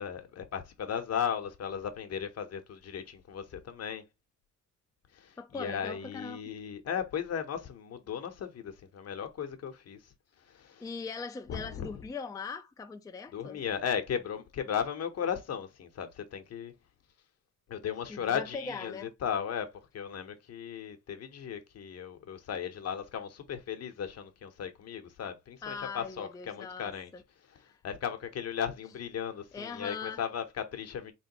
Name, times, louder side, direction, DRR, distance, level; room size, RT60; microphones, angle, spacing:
voice 1, 0.0-4.0 5.1-10.0 10.5-10.8 11.5-11.9 13.3-16.7 17.7-27.1 27.8-31.1, left 8 dB, 55° left, 0.9 m, -36 dB
voice 2, 5.4-6.4 10.8-13.6 18.1-19.1 25.6-27.2 27.6-27.8 29.5-30.2, left 4 dB, 10° left, 0.4 m, -40 dB
3.6 x 3.1 x 2.9 m
cardioid pair, 90°, 30 cm